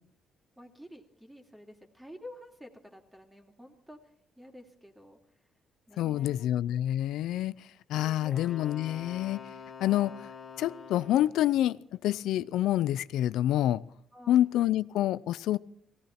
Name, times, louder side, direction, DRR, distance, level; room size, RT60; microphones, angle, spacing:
voice 1, 0.6-4.0 4.4-5.2 5.9-6.5 7.9-8.5 14.1-14.5, left 1 dB, 10° right, 2.6 m, -50 dB
voice 2, 6.0-7.5 7.9-9.4 9.8-10.3 10.6-13.8 14.3-15.6, left 13 dB, 85° left, 0.5 m, -27 dB
Wind instrument woodwind instrument, 8.3-11.5, left 6 dB, 45° left, 2.1 m, -46 dB
17.5 x 16.5 x 4.4 m
cardioid pair, 90°, 0 cm